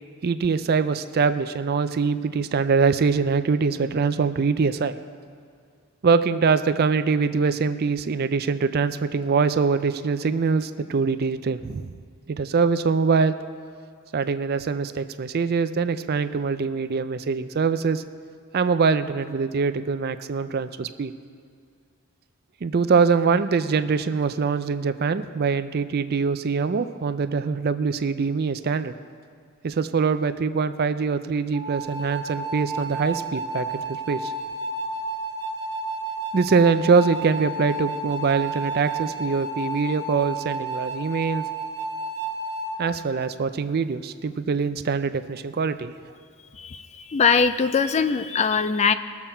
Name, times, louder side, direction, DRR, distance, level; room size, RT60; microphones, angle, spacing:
voice 1, 0.2-5.0 6.0-11.9 12.3-13.3 14.1-18.0 18.5-21.1 22.6-29.0 29.6-34.3 36.3-41.5 42.8-45.9, right 5 dB, 45° right, 12 dB, 0.4 m, -23 dB
sound 1, 31.5-42.8, right 2 dB, 20° right, 1.6 m, -31 dB
voice 2, 46.6-48.9, left 5 dB, 30° left, 11 dB, 0.3 m, -21 dB
20.5 x 7.1 x 4.4 m, 2.2 s
head